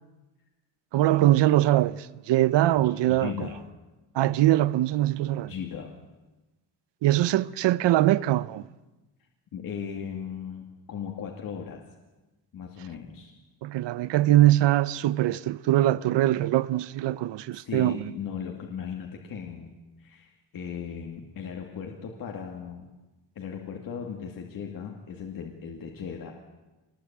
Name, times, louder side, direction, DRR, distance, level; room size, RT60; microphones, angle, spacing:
voice 1, 0.9-3.3 4.1-5.5 7.0-8.6 13.6-18.1, right 14 dB, 70° right, 0.8 m, -22 dB
voice 2, 2.8-3.6 5.5-6.0 9.5-11.8 12.5-13.3 17.5-22.9 23.4-26.3, left 7 dB, 50° left, 2.4 m, -37 dB
25.5 x 20.5 x 8.8 m
cardioid pair, 180°, 44 cm